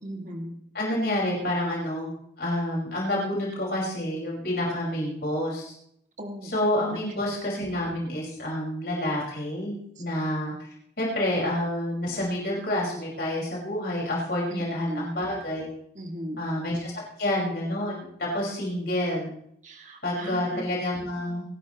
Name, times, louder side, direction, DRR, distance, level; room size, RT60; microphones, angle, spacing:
voice 1, 0.0-0.6 6.2-6.5 6.9-7.0 14.5-15.1 16.0-16.4 19.6-20.6, right 1 dB, 40° right, 2 dB, 2.2 m, -37 dB
voice 2, 0.7-2.1 2.4-5.7 6.4-10.7 11.0-15.7 16.4-19.3 20.0-21.4, left 1 dB, 60° left, -4 dB, 5.4 m, -28 dB
26.0 x 12.5 x 3.1 m, 0.71 s
head